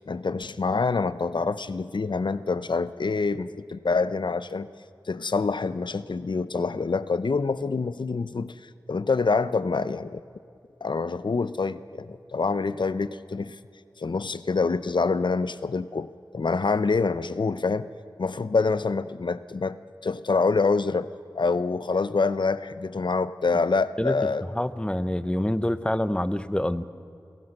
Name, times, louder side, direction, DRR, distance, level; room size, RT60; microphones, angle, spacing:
voice 1, 0.0-4.7 5.1-8.5 8.9-10.2 10.8-13.6 14.0-16.1 16.3-17.9 18.2-19.8 20.0-21.1 21.4-24.4, left 4 dB, 70° left, 14 dB, 0.7 m, -26 dB
voice 2, 24.5-26.8, left 1 dB, 10° left, 14 dB, 0.8 m, -26 dB
28.0 x 17.0 x 6.7 m, 2.5 s
wide cardioid pair, 55°, 8 cm